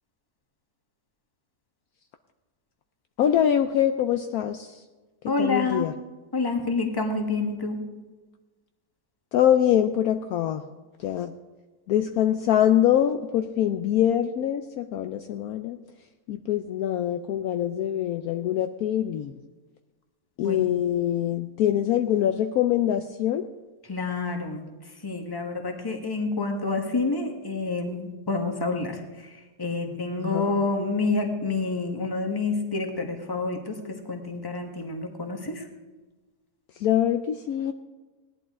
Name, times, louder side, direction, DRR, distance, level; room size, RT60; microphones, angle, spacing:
voice 1, 3.2-4.8 5.2-5.9 9.3-10.6 11.0-11.3 11.9-15.8 16.3-19.4 20.4-23.5 30.2-30.5 36.8-37.7, left 10 dB, 70° left, 7 dB, 1.0 m, -24 dB
voice 2, 5.3-5.8 6.3-7.8 20.4-20.6 23.9-35.7, left 3 dB, 15° left, 3 dB, 1.2 m, -28 dB
18.0 x 11.0 x 3.6 m, 1.2 s
omnidirectional pair, 1.8 m